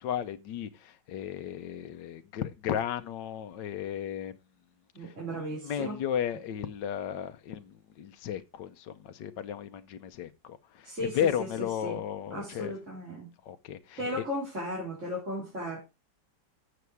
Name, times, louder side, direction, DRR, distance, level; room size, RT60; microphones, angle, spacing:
voice 1, 0.0-4.4 5.0-12.7 13.4-14.2, left 9 dB, 80° left, 1.5 m, -34 dB
voice 2, 4.9-6.0 10.8-12.0 12.3-13.3 14.0-15.8, equal, 40° right, 4.0 m, -36 dB
8.3 x 6.9 x 4.7 m
omnidirectional pair, 1.9 m